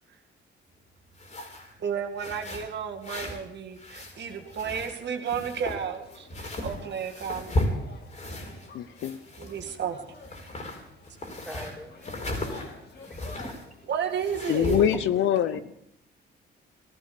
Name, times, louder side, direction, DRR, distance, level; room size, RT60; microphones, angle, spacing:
sound 1, 1.1-1.7 2.2-3.4 3.7-5.0 5.3-8.7 9.0-9.9 10.2-13.7 14.1-14.9, left 1 dB, 35° left, 4.5 m, -35 dB
voice 1, 1.8-7.8 9.4-10.0 13.9-14.9, right 7 dB, 60° right, 2.3 m, -32 dB
sound 2, 4.1-14.8, left 4 dB, 55° left, 2.8 m, -51 dB
voice 2, 8.7-9.2 14.5-15.6, left 10 dB, 75° left, 0.8 m, -24 dB
voice 3, 11.2-12.1 13.0-13.6 15.5-15.6, equal, ahead, 2.9 m, -43 dB
15.5 x 13.5 x 6.8 m
cardioid pair, 90°, 20 cm